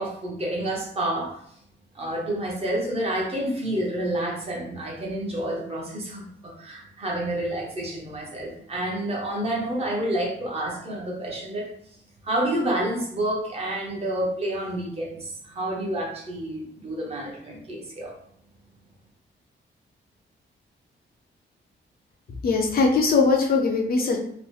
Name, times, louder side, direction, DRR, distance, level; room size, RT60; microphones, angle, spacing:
voice 1, 0.0-1.4 1.9-6.2 6.6-11.7 12.2-18.1, right 1 dB, 30° right, -3 dB, 0.7 m, -29 dB
voice 2, 22.4-24.2, left 4 dB, 50° left, 1 dB, 0.4 m, -20 dB
2.9 x 2.0 x 3.1 m, 0.67 s
wide cardioid pair, 180°, 20 cm